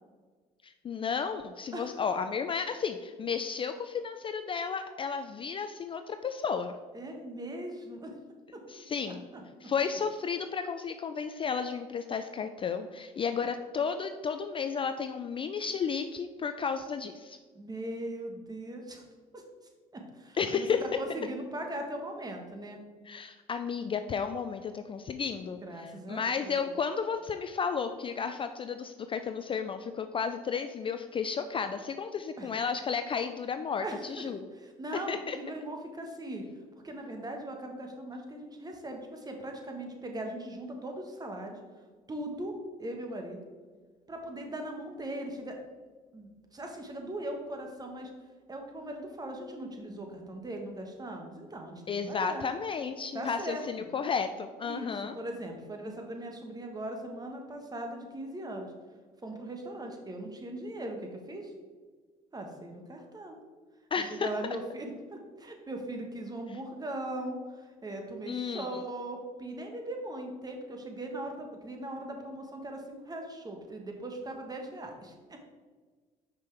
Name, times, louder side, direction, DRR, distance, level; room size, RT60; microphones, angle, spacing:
voice 1, 0.6-6.7 8.7-9.2 9.6-17.4 20.4-20.8 23.1-34.4 35.1-35.4 51.9-55.1 63.9-64.3 68.3-68.7, left 6 dB, 30° left, 8 dB, 0.4 m, -33 dB
voice 2, 6.9-8.1 8.5-8.6 9.1-9.4 13.4-13.5 17.5-19.0 19.3-19.4 19.9-22.8 25.6-26.8 32.4-32.5 33.8-34.2 34.5-36.4 36.8-41.6 42.1-43.4 44.1-45.6 46.1-48.1 48.5-52.4 53.1-53.9 54.6-58.7 59.2-61.5 62.3-63.4 64.1-75.4, right 1 dB, 25° right, 3 dB, 1.2 m, -39 dB
5.8 x 5.2 x 3.4 m, 1.5 s
hypercardioid pair, 65°, 17 cm